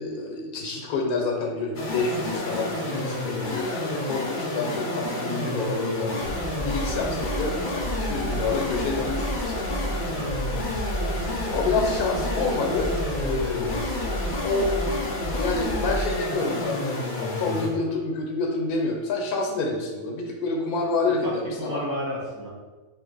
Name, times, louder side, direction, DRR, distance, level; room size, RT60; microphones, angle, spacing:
voice 1, 0.0-6.1 6.5-9.5 11.5-14.0 14.4-14.7 15.4-21.8, left 3 dB, 75° left, 1 dB, 1.2 m, -28 dB
sound 1, 1.7-17.8, left 2 dB, 55° left, 0.5 m, -30 dB
sound 2, 6.2-16.1, right 1 dB, 65° right, 0.8 m, -32 dB
voice 2, 10.1-10.9 21.2-22.5, equal, 85° right, -5 dB, 1.7 m, -33 dB
4.2 x 2.8 x 3.9 m, 1.3 s
omnidirectional pair, 1.6 m